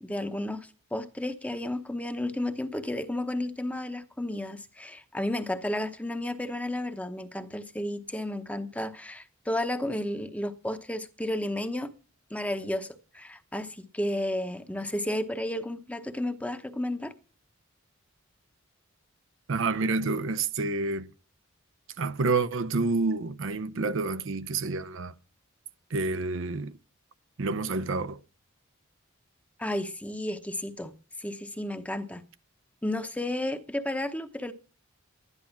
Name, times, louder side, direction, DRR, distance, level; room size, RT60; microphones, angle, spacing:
voice 1, 0.0-11.9 12.3-17.1 29.6-30.9 31.2-32.2 32.8-34.5, left 1 dB, 5° left, 0.9 m, -32 dB
voice 2, 19.5-21.1 22.0-25.1 25.9-26.7 27.4-28.2, right 3 dB, 65° right, 0.7 m, -28 dB
12.0 x 11.0 x 5.9 m
head